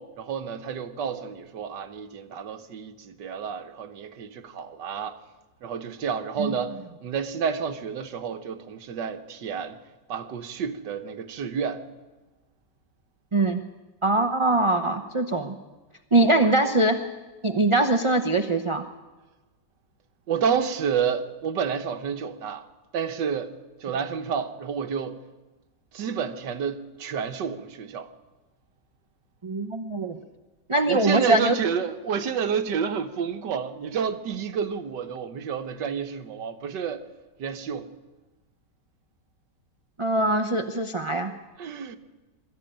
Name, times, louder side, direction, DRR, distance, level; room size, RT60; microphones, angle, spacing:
voice 1, 0.0-5.2 5.6-9.8 10.1-11.8 16.2-16.5 20.3-22.6 22.9-25.2 25.9-28.1 30.9-37.0 37.4-37.9 41.6-42.0, right 7 dB, 75° right, 1.6 m, -30 dB
voice 2, 14.0-15.5 16.1-17.0 17.4-18.8 29.4-30.2 30.7-31.6 40.0-41.3, right 2 dB, 30° right, 0.5 m, -22 dB
22.5 x 13.5 x 8.9 m
omnidirectional pair, 1.9 m